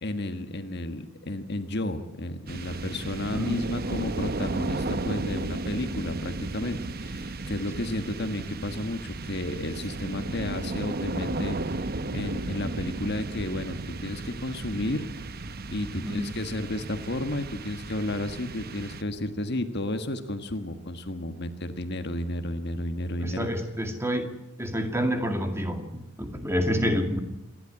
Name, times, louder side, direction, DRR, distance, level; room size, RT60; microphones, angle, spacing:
voice 1, 0.0-11.8 12.1-15.0 15.7-23.5, left 1 dB, 50° left, 8 dB, 1.6 m, -32 dB
sound 1, 2.5-19.4, right 2 dB, 45° right, 0.9 m, -34 dB
voice 2, 16.0-16.3 23.2-24.3 24.6-27.2, equal, 10° right, 5 dB, 2.2 m, -28 dB
27.5 x 12.0 x 9.9 m, 0.96 s
head